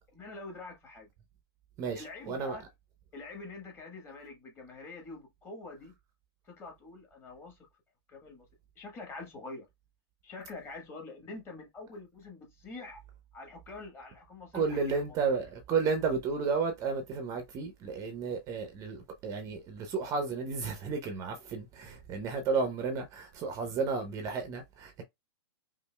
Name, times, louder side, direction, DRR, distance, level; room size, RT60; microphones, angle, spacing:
voice 1, 0.1-1.1 1.9-2.6 3.1-5.9 6.4-7.6 8.1-8.5 8.7-9.7 10.2-13.0 13.3-15.0, left 3 dB, 15° left, 1.4 m, -45 dB
voice 2, 1.8-2.6 14.5-25.0, right 5 dB, 25° right, 0.7 m, -32 dB
5.3 x 2.6 x 2.2 m
hypercardioid pair, 150°, 14 cm